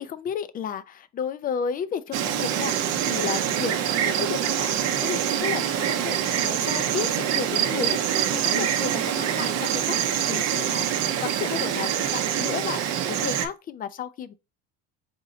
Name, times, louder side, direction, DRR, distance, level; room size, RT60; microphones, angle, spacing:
voice 1, 0.0-10.9 11.2-12.8 13.1-14.3, left 8 dB, 30° left, 0.4 m, -33 dB
Insect, 2.1-13.5, right 9 dB, 55° right, 0.7 m, -25 dB
4.2 x 2.6 x 3.9 m
supercardioid pair, 120°, 33 cm